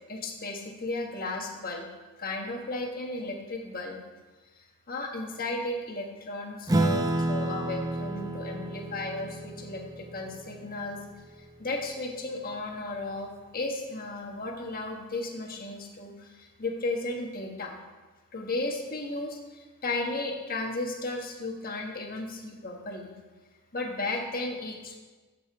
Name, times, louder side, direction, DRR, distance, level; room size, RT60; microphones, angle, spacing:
voice 1, 0.1-1.9 2.2-4.0 4.6-11.0 11.4-17.8 18.3-23.1 23.7-24.9, left 2 dB, 40° left, 1 dB, 1.4 m, -34 dB
Acoustic guitar / Strum, 6.7-11.5, right 1 dB, 15° right, 0.6 m, -30 dB
14.0 x 6.8 x 3.5 m, 1.3 s
head